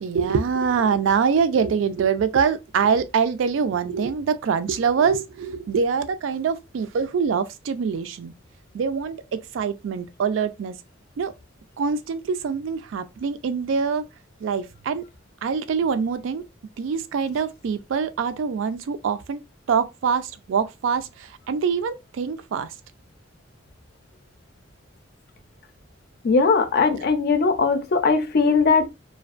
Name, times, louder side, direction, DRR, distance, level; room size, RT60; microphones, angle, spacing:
voice 1, 0.0-8.3 8.7-10.7 11.2-11.3 11.8-14.0 14.4-15.0 15.4-16.4 16.8-19.4 19.7-21.1 21.5-22.7, right 6 dB, 85° right, 0.3 m, -24 dB
voice 2, 26.2-28.9, left 4 dB, 55° left, 0.4 m, -19 dB
2.5 x 2.2 x 2.4 m
head